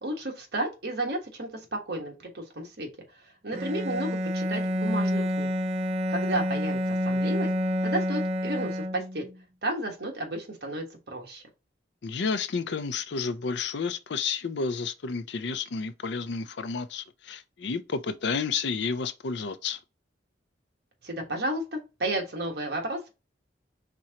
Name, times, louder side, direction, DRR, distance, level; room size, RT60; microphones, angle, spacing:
voice 1, 0.0-2.9 3.4-5.5 6.1-7.5 7.8-9.3 9.6-11.4 21.0-23.1, right 1 dB, 55° right, 1.3 m, -32 dB
Bowed string instrument, 3.5-9.3, equal, 30° right, 0.4 m, -28 dB
voice 2, 12.0-19.8, left 5 dB, 65° left, 0.5 m, -31 dB
4.3 x 3.7 x 2.9 m
head